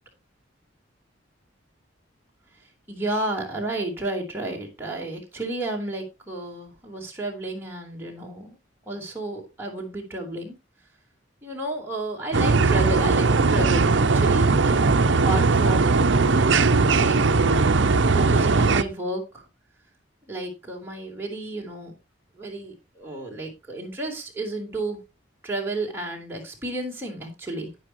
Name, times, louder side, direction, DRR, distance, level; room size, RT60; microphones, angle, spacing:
voice 1, 2.9-8.6 8.9-10.6 11.4-17.7 18.1-19.4 20.3-21.9 22.3-25.0 25.4-27.7, right 1 dB, 10° right, -1 dB, 3.6 m, -32 dB
sound 1, 12.3-18.8, right 4 dB, 70° right, 0.7 m, -19 dB
11.5 x 9.7 x 3.0 m, 0.25 s
head